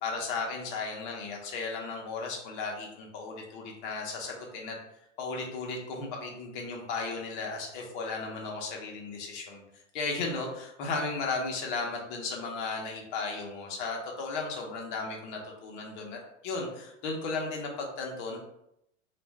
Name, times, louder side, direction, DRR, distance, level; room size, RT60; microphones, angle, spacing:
voice 1, 0.0-4.8 5.2-18.4, left 3 dB, 40° left, 0 dB, 0.7 m, -35 dB
2.5 x 2.2 x 3.1 m, 0.80 s
hypercardioid pair, 140°, 39 cm